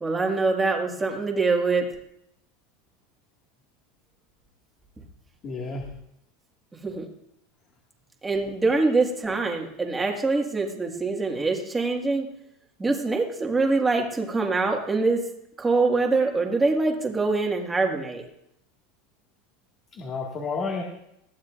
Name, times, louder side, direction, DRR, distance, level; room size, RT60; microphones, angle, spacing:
voice 1, 0.0-1.9 6.8-7.1 8.2-12.3 12.8-15.2 15.6-18.2, right 3 dB, 10° right, 1 dB, 1.9 m, -24 dB
voice 2, 5.4-5.9 19.9-20.8, left 4 dB, 30° left, 0 dB, 2.0 m, -31 dB
20.5 x 15.0 x 2.6 m, 0.77 s
supercardioid pair, 160°, 0 cm